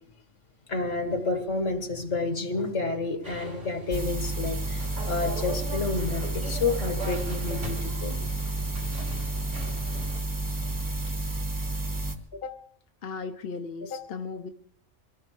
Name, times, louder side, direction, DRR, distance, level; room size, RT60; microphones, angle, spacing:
voice 1, 0.7-8.2, left 3 dB, 75° left, 6 dB, 2.1 m, -30 dB
sound 1, 3.2-10.2, right 1 dB, 70° right, 3.8 m, -40 dB
sound 2, 3.9-12.1, right 2 dB, 15° right, 1.3 m, -31 dB
voice 2, 12.3-12.7 13.0-14.5, left 4 dB, 55° left, 5 dB, 1.0 m, -36 dB
24.0 x 18.0 x 3.3 m, 0.67 s
omnidirectional pair, 1.3 m